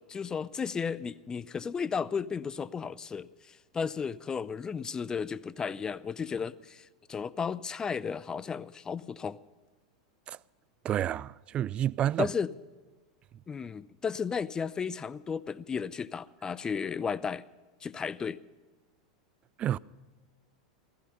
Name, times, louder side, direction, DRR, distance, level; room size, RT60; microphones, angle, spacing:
voice 1, 0.0-9.4 12.2-12.5 13.5-17.4 17.8-18.4, left 6 dB, 20° left, 0.6 m, -34 dB
voice 2, 10.8-12.3 19.6-19.8, right 11 dB, 35° right, 0.4 m, -29 dB
15.5 x 15.5 x 5.5 m
hypercardioid pair, 100°, 3 cm